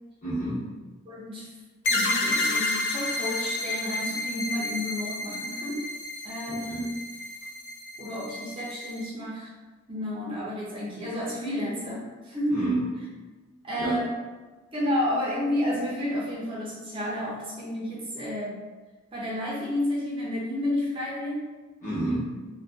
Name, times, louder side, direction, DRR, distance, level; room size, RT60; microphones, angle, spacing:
voice 1, 0.2-0.7 6.5-6.9 12.5-13.0 13.8-14.1 21.8-22.2, right 2 dB, 40° left, -9 dB, 1.0 m, -29 dB
voice 2, 1.1-1.5 1.9-5.8 6.2-6.9 8.0-9.5 9.9-12.7 13.6-14.1 14.7-18.6 19.1-21.5, left 1 dB, 25° right, -6 dB, 0.5 m, -31 dB
sound 1, 1.8-9.1, left 2 dB, 60° left, 0.4 m, -30 dB
2.5 x 2.2 x 2.3 m, 1.3 s
head